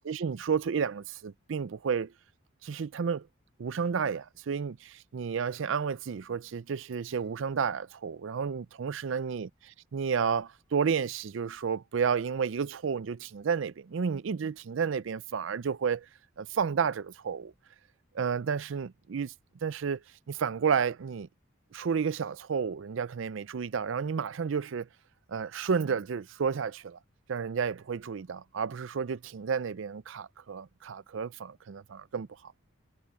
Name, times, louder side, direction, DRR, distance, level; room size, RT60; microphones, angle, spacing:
voice 1, 0.1-2.1 2.6-3.3 3.6-9.5 9.9-16.1 16.4-17.5 18.1-19.3 19.6-20.0 20.3-21.3 21.7-24.9 25.3-27.0 27.3-32.5, right 6 dB, 80° right, 0.4 m, -31 dB
head